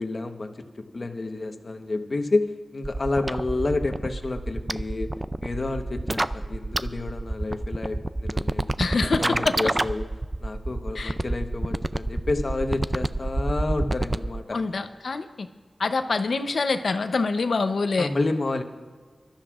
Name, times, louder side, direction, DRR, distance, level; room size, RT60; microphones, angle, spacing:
voice 1, 0.0-2.5 2.7-5.1 5.4-10.1 10.4-14.4 18.0-18.6, left 2 dB, 50° left, 5 dB, 1.1 m, -29 dB
sound 1, 2.8-14.4, right 2 dB, 25° right, 0.4 m, -28 dB
voice 2, 8.8-9.7 10.9-11.2 14.5-15.5 15.8-18.1, left 4 dB, 75° left, 8 dB, 0.7 m, -25 dB
26.0 x 13.0 x 2.5 m, 1.5 s
wide cardioid pair, 75°, 0 cm